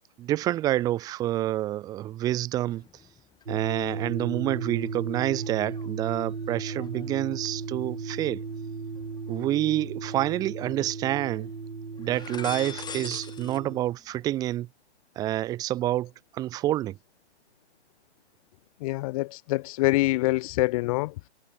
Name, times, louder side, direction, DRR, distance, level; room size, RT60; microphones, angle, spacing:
voice 1, 0.2-2.8 3.5-8.4 9.3-11.5 12.0-14.7 15.2-17.0, right 14 dB, 10° right, 0.7 m, -28 dB
sound 1, 2.6-3.4 3.8-9.4 10.0-11.0 11.2-11.5 11.9-13.6 13.9-14.5, left 7 dB, 10° left, 7.9 m, -46 dB
sound 2, 3.5-13.8, right 4 dB, 80° right, 2.2 m, -35 dB
voice 2, 18.8-21.1, left 20 dB, 30° left, 1.6 m, -25 dB
figure-of-eight pair, 125°, 35 cm